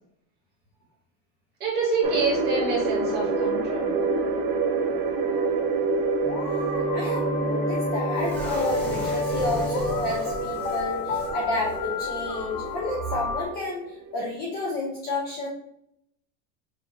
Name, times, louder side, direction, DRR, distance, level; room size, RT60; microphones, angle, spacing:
voice 1, 1.6-3.9, right 3 dB, 25° right, -5 dB, 1.6 m, -27 dB
sound 1, 2.0-14.2, right 4 dB, 75° right, 1.0 m, -28 dB
sound 2, 6.2-13.4, left 4 dB, 85° left, 1.1 m, -31 dB
voice 2, 6.9-15.5, left 2 dB, 25° left, -4 dB, 0.5 m, -31 dB
sound 3, 8.1-11.3 11.6-11.8 12.1-12.3, equal, 5° left, 1.2 m, -37 dB
5.8 x 2.7 x 2.8 m, 0.76 s
supercardioid pair, 170°, 42 cm